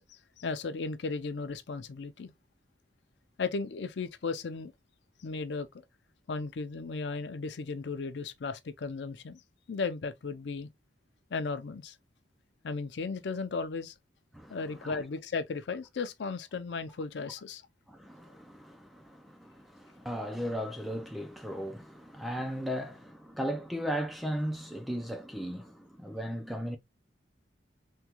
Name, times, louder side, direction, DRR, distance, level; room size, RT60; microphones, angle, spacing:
voice 1, 0.1-2.3 3.4-4.7 5.2-5.7 6.3-9.4 9.7-10.7 11.3-12.0 12.6-13.9 14.5-17.6, left 4 dB, 75° left, 0.5 m, -35 dB
voice 2, 14.3-15.0 17.9-26.8, equal, ahead, 0.4 m, -36 dB
3.6 x 2.3 x 2.9 m
head